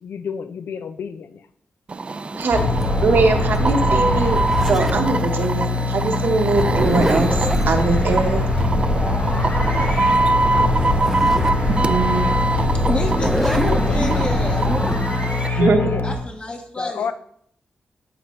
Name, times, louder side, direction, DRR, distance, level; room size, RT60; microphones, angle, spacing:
voice 1, 0.0-1.4 2.3-2.8 10.4-11.0 13.6-14.3 15.6-16.0 16.8-17.1, left 6 dB, 85° left, 0.4 m, -30 dB
sound 1, 1.9-15.5, right 3 dB, 35° right, 0.3 m, -25 dB
Zipper (clothing), 2.4-5.1 6.4-7.7 10.3-10.4 10.6-11.6 12.1-12.2 13.0-15.0, equal, 5° right, 0.7 m, -27 dB
sound 2, 2.5-16.2, left 2 dB, 50° left, 3.6 m, -22 dB
voice 2, 3.0-4.4 4.7-7.4 7.7-8.5 11.9-12.3 15.6-15.8, right 3 dB, 70° right, 1.1 m, -21 dB
voice 3, 12.7-14.7 16.0-17.1, left 2 dB, 30° left, 1.1 m, -29 dB
13.0 x 4.5 x 3.1 m
wide cardioid pair, 135°, 4 cm